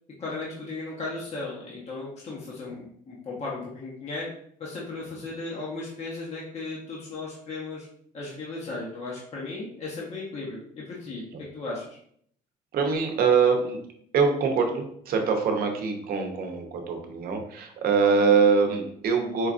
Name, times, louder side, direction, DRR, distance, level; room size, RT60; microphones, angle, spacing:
voice 1, 0.2-4.3 4.6-7.9 8.1-11.2 11.5-11.9, left 3 dB, 40° left, -5 dB, 0.8 m, -36 dB
voice 2, 12.7-13.8 14.1-19.5, right 5 dB, 60° right, 4 dB, 0.7 m, -23 dB
4.5 x 2.4 x 2.5 m, 0.65 s
cardioid pair, 110°, 17 cm